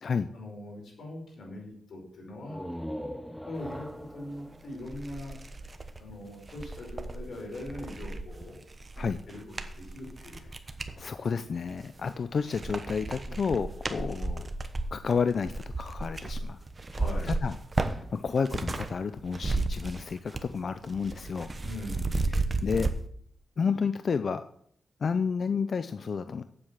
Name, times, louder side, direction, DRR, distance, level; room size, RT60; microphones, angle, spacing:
voice 1, 0.3-2.6 3.4-5.3 6.0-8.6 9.3-10.5 10.9-11.1 16.9-17.4 21.6-22.4, left 1 dB, 75° left, 0 dB, 5.1 m, -41 dB
sound 1, 2.4-6.0, equal, ahead, 0.6 m, -41 dB
sound 2, 4.3-4.4 4.8-11.0 11.6-12.2 12.5-18.9 19.2-20.6 20.8-22.9, right 2 dB, 30° right, 1.0 m, -34 dB
voice 2, 11.0-14.5 14.9-16.6 17.2-21.5 22.3-22.9 23.6-24.4 25.0-26.4, left 5 dB, 55° left, 10 dB, 0.5 m, -31 dB
8.6 x 7.8 x 7.4 m, 0.66 s
wide cardioid pair, 105°, 0 cm